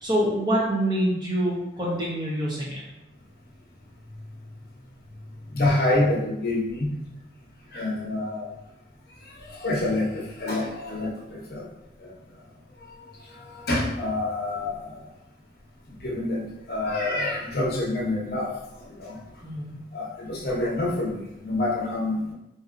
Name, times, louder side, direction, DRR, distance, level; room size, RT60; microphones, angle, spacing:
voice 1, 0.0-2.8 19.4-19.8, equal, 25° right, -5 dB, 0.8 m, -26 dB
voice 2, 5.5-6.9 7.7-8.5 9.2-11.7 12.0-12.1 13.0-15.1 16.0-18.5 18.8-19.2 19.9-22.3, left 2 dB, 60° left, -3 dB, 0.8 m, -27 dB
4.1 x 2.7 x 2.5 m, 0.87 s
head